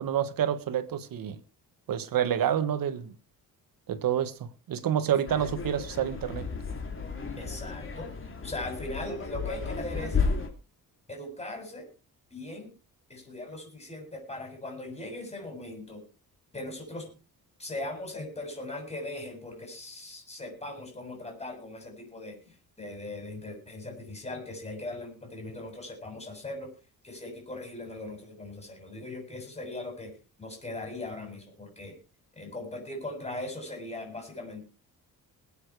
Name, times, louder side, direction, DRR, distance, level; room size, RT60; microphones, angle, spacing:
voice 1, 0.0-1.4 1.9-3.1 3.9-6.5, right 9 dB, 70° right, 1.5 m, -28 dB
sound 1, 5.3-10.5, left 4 dB, 35° left, 3.2 m, -33 dB
voice 2, 7.4-8.2 8.4-10.2 11.1-11.9 12.3-12.7 13.1-16.0 16.5-17.1 17.6-26.7 27.0-30.1 30.4-32.0 32.3-34.6, left 2 dB, 15° left, 7.5 m, -39 dB
21.0 x 8.8 x 4.8 m
cardioid pair, 125°, 36 cm